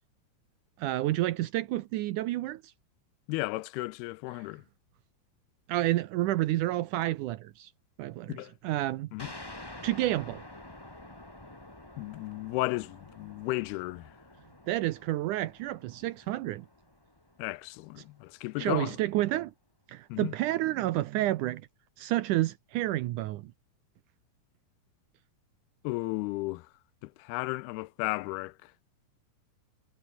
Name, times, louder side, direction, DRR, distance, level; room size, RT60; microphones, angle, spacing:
voice 1, 0.8-2.7 5.7-7.7 8.0-8.4 8.6-9.1 9.8-10.4 14.7-16.7 18.6-19.5 19.9-21.6 22.0-23.5, right 15 dB, 85° right, 1.8 m, -29 dB
voice 2, 3.3-4.6 8.3-8.5 9.1-9.3 12.0-14.1 17.4-19.0 20.1-20.3 25.8-26.7 27.0-28.7, left 22 dB, 85° left, 2.5 m, -34 dB
sound 1, 9.2-18.4, left 1 dB, 10° left, 1.0 m, -49 dB
omnidirectional pair, 4.6 m